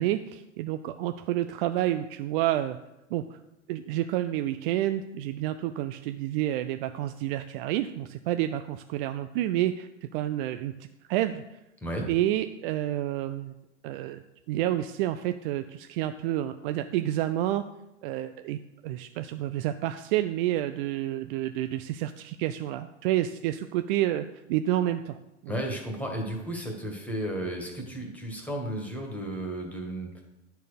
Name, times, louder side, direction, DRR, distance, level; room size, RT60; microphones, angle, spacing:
voice 1, 0.0-2.8 3.1-3.4 3.7-10.7 11.1-11.4 12.1-13.5 13.8-14.2 14.5-17.6 18.0-18.6 18.8-25.2 25.4-25.5, right 13 dB, 50° right, 9 dB, 0.4 m, -29 dB
voice 2, 25.5-30.1, right 1 dB, 5° left, 1 dB, 1.8 m, -33 dB
10.0 x 4.5 x 5.1 m, 0.94 s
hypercardioid pair, 105°, 37 cm